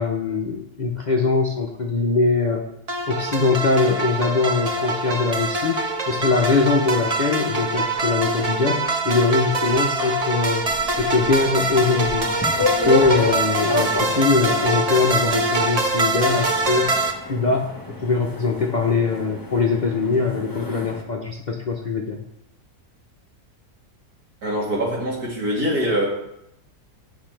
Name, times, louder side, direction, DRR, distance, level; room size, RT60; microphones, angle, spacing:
voice 1, 0.0-2.7 3.1-10.6 10.9-16.9 17.2-17.7 18.0-22.2, left 4 dB, 45° left, 0 dB, 0.6 m, -22 dB
sound 1, 2.9-17.1, right 2 dB, 40° right, 0.6 m, -24 dB
sound 2, 10.7-21.0, left 3 dB, 15° left, 0.9 m, -30 dB
voice 2, 24.4-26.1, equal, 80° right, -4 dB, 2.9 m, -23 dB
8.5 x 5.8 x 4.5 m, 0.82 s
omnidirectional pair, 1.6 m